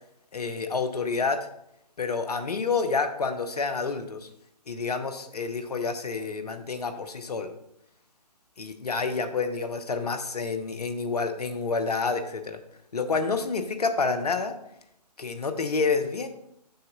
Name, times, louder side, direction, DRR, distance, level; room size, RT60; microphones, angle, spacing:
voice 1, 0.3-1.4 2.0-4.3 4.7-7.5 8.6-12.6 12.9-14.6 15.2-16.3, left 4 dB, 65° left, 8 dB, 1.0 m, -28 dB
6.8 x 6.7 x 3.9 m, 0.77 s
figure-of-eight pair, 145°, 21 cm